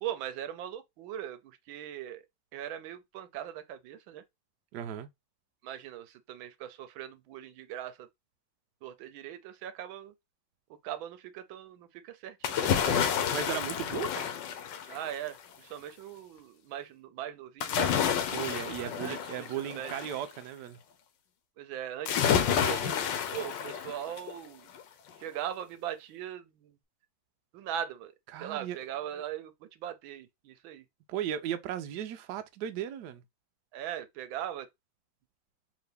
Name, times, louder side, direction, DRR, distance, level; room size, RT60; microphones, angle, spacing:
voice 1, 0.0-2.2 2.5-4.2 5.6-8.1 8.8-10.1 10.8-13.0 14.9-17.9 18.8-19.2 19.7-19.9 21.6-23.1 23.3-24.7 25.2-26.7 27.5-28.1 28.4-30.8 33.7-34.7, right 10 dB, 85° right, 1.4 m, -40 dB
voice 2, 4.7-5.1 13.3-14.3 18.3-20.8 28.3-28.8 31.1-33.2, right 10 dB, 70° right, 1.1 m, -36 dB
sound 1, 12.4-15.3 17.6-20.2 22.1-24.3 24.8-24.9, left 8 dB, 75° left, 1.3 m, -29 dB
3.8 x 3.0 x 3.3 m
omnidirectional pair, 2.2 m